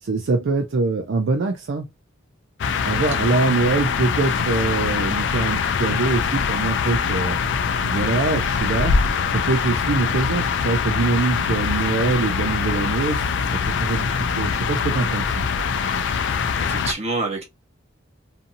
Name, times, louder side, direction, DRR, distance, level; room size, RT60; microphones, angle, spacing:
voice 1, 0.0-1.9 2.9-7.4 7.8-9.0 9.3-13.3 13.7-15.5, right 3 dB, 60° right, 0.4 m, -23 dB
sound 1, 2.6-16.9, left 6 dB, 60° left, 0.3 m, -23 dB
voice 2, 15.9-16.2 16.6-17.4, right 3 dB, 30° right, 1.0 m, -28 dB
2.6 x 2.6 x 2.5 m
head